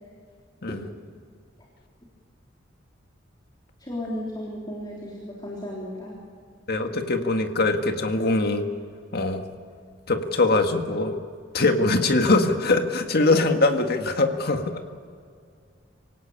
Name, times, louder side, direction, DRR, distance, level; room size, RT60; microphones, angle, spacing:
voice 1, 3.8-6.2, left 1 dB, 25° left, -3 dB, 3.7 m, -34 dB
voice 2, 6.7-8.7 9.1-9.4 10.1-11.2 11.5-14.8, left 2 dB, 55° left, 5 dB, 1.8 m, -22 dB
26.0 x 17.5 x 8.7 m, 2.2 s
head